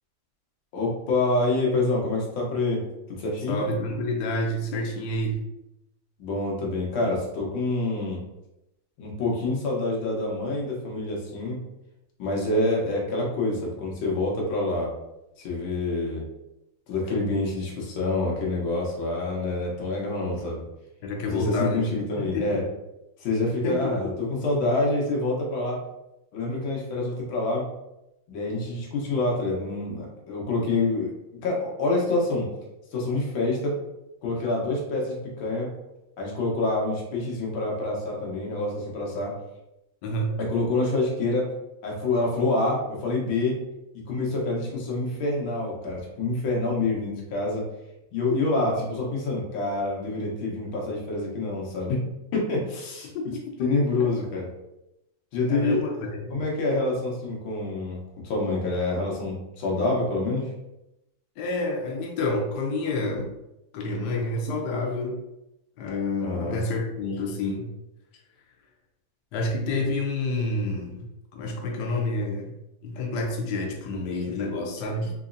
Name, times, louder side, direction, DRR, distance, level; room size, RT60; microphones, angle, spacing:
voice 1, 0.7-2.8 3.1-3.6 6.2-8.2 9.0-11.6 12.2-14.9 15.4-16.2 16.9-20.6 21.2-22.6 23.2-25.8 26.3-27.7 28.3-31.1 31.4-32.5 32.9-33.8 34.2-35.7 36.2-39.3 40.4-41.5 41.8-43.6 44.1-47.6 48.1-52.0 52.3-53.1 53.6-54.5 55.3-60.5 66.2-66.6, left 2 dB, 90° left, -2 dB, 1.7 m, -27 dB
voice 2, 3.5-5.4 21.0-21.9 22.2-22.6 23.6-24.2 40.0-40.3 48.6-48.8 53.1-53.5 55.5-56.3 61.4-63.3 63.7-65.2 65.8-67.7 69.3-71.1 71.3-72.5 72.8-75.1, left 2 dB, 70° left, 1 dB, 1.1 m, -29 dB
4.0 x 2.9 x 2.5 m, 0.89 s
omnidirectional pair, 2.1 m